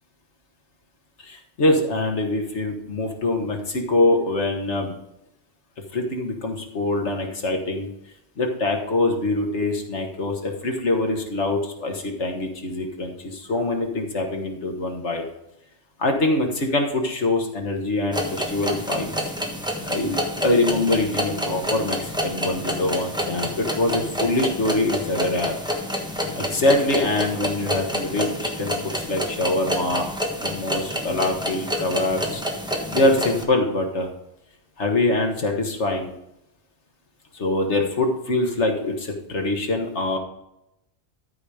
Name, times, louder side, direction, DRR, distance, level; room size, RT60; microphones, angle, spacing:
voice 1, 1.2-4.9 5.9-7.9 8.4-15.2 16.0-19.3 19.8-25.5 26.4-30.1 30.4-32.4 32.9-34.1 34.8-36.1 37.3-40.2, left 2 dB, 80° left, 3 dB, 1.9 m, -24 dB
sound 1, 18.1-33.4, equal, 5° right, 1.3 m, -28 dB
12.5 x 5.1 x 5.0 m, 0.84 s
omnidirectional pair, 1.2 m